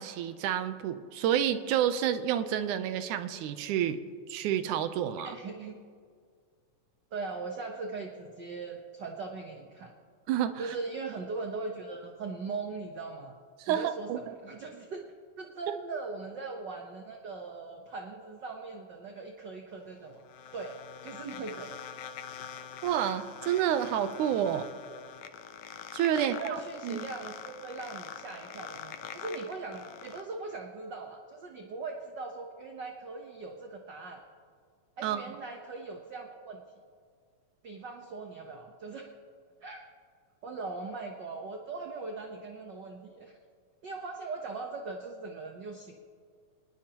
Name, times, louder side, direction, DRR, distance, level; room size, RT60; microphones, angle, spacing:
voice 1, 0.0-4.0 4.3-5.4 10.3-10.6 13.6-14.3 15.7-15.8 22.8-24.7 25.9-27.1 35.0-35.2, right 10 dB, 85° right, 10 dB, 2.3 m, -29 dB
voice 2, 5.2-5.8 7.1-9.9 10.6-13.4 13.7-15.0 15.4-20.2 20.5-21.7 26.1-34.2 35.0-36.6 37.6-39.1 39.6-39.8 40.4-43.4 43.8-45.9, right 4 dB, 65° right, 2 dB, 1.1 m, -40 dB
sound 1, 19.7-30.2, left 8 dB, 85° left, 2.3 m, -44 dB
24.0 x 20.0 x 3.0 m, 2.1 s
omnidirectional pair, 3.4 m